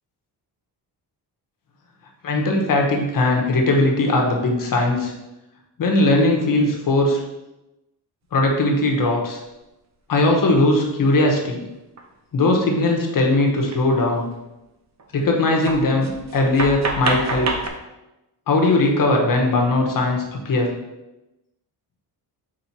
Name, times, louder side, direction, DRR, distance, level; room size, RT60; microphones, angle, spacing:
voice 1, 2.2-5.1 5.8-7.2 8.3-9.4 10.1-11.6 12.3-14.3 15.1-17.5 18.5-20.7, left 2 dB, 50° left, 1 dB, 1.1 m, -19 dB
sound 1, 12.0-12.1 13.7-13.8 14.1-14.3 15.0-15.1 15.6-17.7, right 3 dB, 40° right, 0.7 m, -27 dB
4.7 x 4.3 x 4.6 m, 0.98 s
wide cardioid pair, 150°, 44 cm